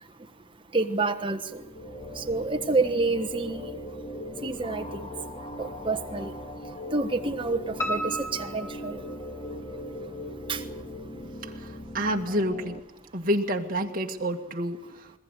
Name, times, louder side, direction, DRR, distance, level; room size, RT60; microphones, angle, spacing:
voice 1, 0.7-1.6 2.2-3.7 4.4-5.0 5.6-6.3 6.9-9.0 10.5-10.6, right 3 dB, 25° right, 1.3 m, -28 dB
sound 1, 1.2-12.8, left 1 dB, 30° left, 1.6 m, -39 dB
Piano, 7.8-9.7 10.1-11.0 11.3-11.4 11.9-12.0 12.2-12.3, right 1 dB, 15° left, 1.1 m, -34 dB
voice 2, 11.9-12.8 13.1-14.9, equal, 45° right, 1.9 m, -28 dB
22.0 x 20.0 x 8.2 m
head